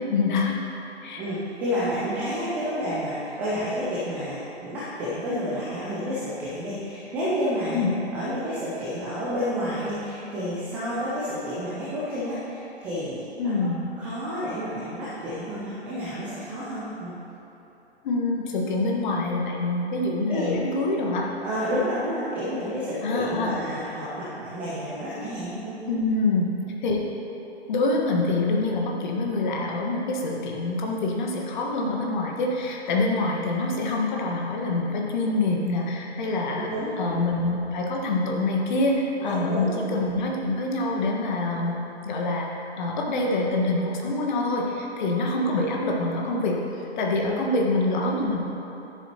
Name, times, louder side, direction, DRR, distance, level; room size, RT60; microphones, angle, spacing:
voice 1, 0.1-0.6 1.0-1.2 7.7-7.9 13.4-13.8 18.0-21.3 23.0-23.5 25.9-26.6 26.8-27.0 27.7-42.5 42.8-48.4, left 2 dB, 45° left, -1 dB, 1.5 m, -25 dB
voice 2, 1.2-7.8 8.1-13.5 14.0-17.1 20.3-20.6 21.4-25.8 36.5-37.2 39.2-40.0 47.2-47.3, equal, 5° right, -10 dB, 0.3 m, -30 dB
12.5 x 7.4 x 2.9 m, 3.0 s
figure-of-eight pair, 120°, 33 cm